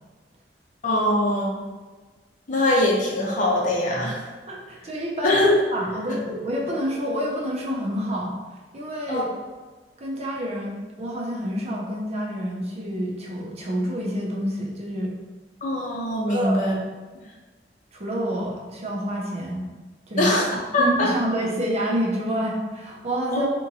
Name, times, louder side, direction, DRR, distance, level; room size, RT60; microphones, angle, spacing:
voice 1, 0.8-1.6 2.5-4.3 5.2-5.5 9.1-9.3 15.6-16.7 20.2-21.1 23.3-23.5, left 1 dB, 45° left, -3 dB, 0.6 m, -22 dB
voice 2, 4.5-5.4 5.7-8.3 8.7-9.3 10.0-15.1 16.3-16.7 17.9-19.7 20.1-20.3 20.8-23.5, equal, 40° right, -3 dB, 0.7 m, -28 dB
3.5 x 3.0 x 2.7 m, 1.3 s
head